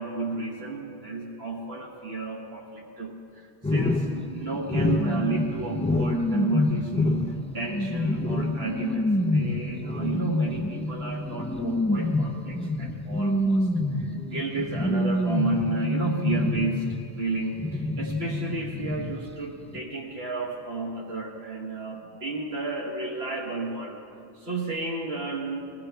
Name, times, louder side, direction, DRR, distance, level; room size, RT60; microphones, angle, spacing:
voice 1, 0.0-3.1 3.7-7.2 7.5-13.7 14.0-16.9 17.2-24.0 24.3-25.6, right 3 dB, 80° right, -1 dB, 1.5 m, -32 dB
sound 1, 3.6-17.2 17.6-19.5 19.7-19.8, left 2 dB, 10° left, 0.4 m, -27 dB
21.5 x 16.5 x 3.4 m, 2.6 s
omnidirectional pair, 1.0 m